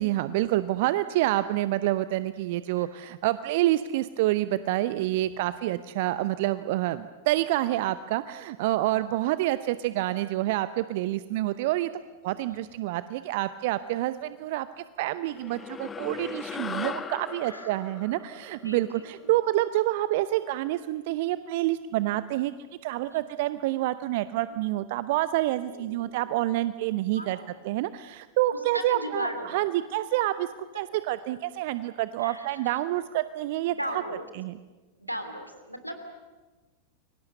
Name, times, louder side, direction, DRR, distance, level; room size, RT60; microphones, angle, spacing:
voice 1, 0.0-11.9 12.2-14.7 15.0-22.5 22.8-27.4 27.6-30.5 30.7-34.0 34.4-34.6, right 15 dB, 50° right, 14 dB, 0.7 m, -27 dB
voice 2, 8.8-9.1 12.5-12.6 16.9-17.1 17.4-17.7 18.6-19.1 23.1-23.3 24.5-24.6 25.6-26.3 27.1-27.6 28.5-29.5 32.2-32.7 33.7-34.2 35.0-35.9, equal, 90° right, 7 dB, 3.0 m, -37 dB
sound 1, 15.3-20.0, left 6 dB, 20° left, 1.2 m, -39 dB
29.5 x 23.5 x 6.8 m, 1.2 s
figure-of-eight pair, 90°, 0 cm